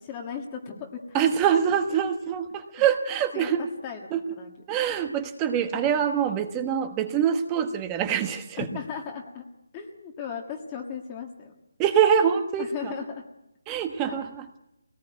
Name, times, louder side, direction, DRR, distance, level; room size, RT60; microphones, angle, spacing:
voice 1, 0.0-1.2 1.6-1.7 2.8-2.9 3.3-4.0 4.3-4.8 5.7-5.8 8.6-9.4 9.7-11.5 12.6-13.2 14.0-14.2, left 6 dB, 15° left, 2 dB, 1.5 m, -37 dB
voice 2, 1.1-3.6 4.1-4.2 4.7-8.6 11.8-12.6 13.7-14.4, right 8 dB, 15° right, 8 dB, 1.1 m, -24 dB
23.5 x 18.5 x 9.3 m, 0.88 s
hypercardioid pair, 175°, 0 cm